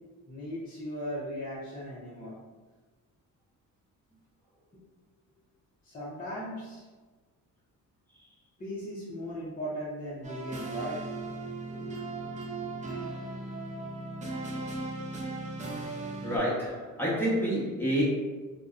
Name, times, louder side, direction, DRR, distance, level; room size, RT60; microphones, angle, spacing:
voice 1, 0.3-2.3 4.7-4.8 5.8-6.9 8.6-12.8, equal, 25° left, -8 dB, 0.6 m, -39 dB
sound 1, 10.2-16.4, right 2 dB, 25° right, 0.4 m, -37 dB
voice 2, 16.2-18.0, equal, 5° left, -7 dB, 0.9 m, -28 dB
2.4 x 2.1 x 2.4 m, 1.3 s
cardioid pair, 95°, 33 cm